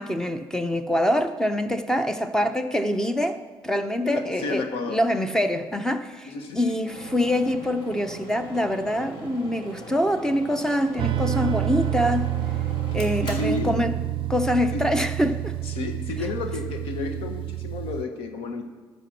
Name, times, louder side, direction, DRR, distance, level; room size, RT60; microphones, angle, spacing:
voice 1, 0.0-12.3 12.9-14.0 14.3-15.6, equal, 5° left, 0.7 m, -25 dB
voice 2, 4.0-5.0 6.2-6.6 13.2-13.8 14.7-14.9 15.7-18.6, left 3 dB, 80° left, 1.3 m, -31 dB
sound 1, 6.8-14.5, right 1 dB, 60° left, 2.5 m, -41 dB
sound 2, 11.0-18.0, right 13 dB, 60° right, 0.4 m, -28 dB
14.0 x 5.3 x 6.1 m
cardioid pair, 110°, 10 cm